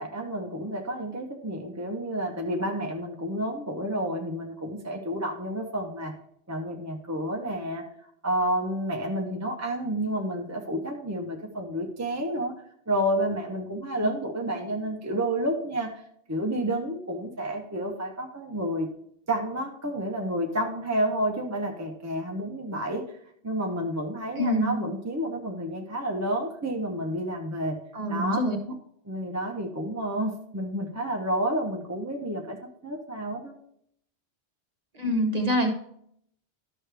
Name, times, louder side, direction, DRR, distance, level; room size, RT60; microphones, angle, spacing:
voice 1, 0.0-6.1 6.5-7.8 8.2-12.5 12.9-16.0 16.3-18.9 19.3-23.2 23.4-27.8 28.1-28.4 29.1-32.6 32.8-33.5, right 1 dB, 20° right, 1 dB, 0.7 m, -30 dB
voice 2, 24.3-24.8 27.9-28.7 34.9-35.7, equal, 40° right, 3 dB, 1.1 m, -26 dB
11.5 x 6.3 x 3.3 m, 0.70 s
omnidirectional pair, 1.1 m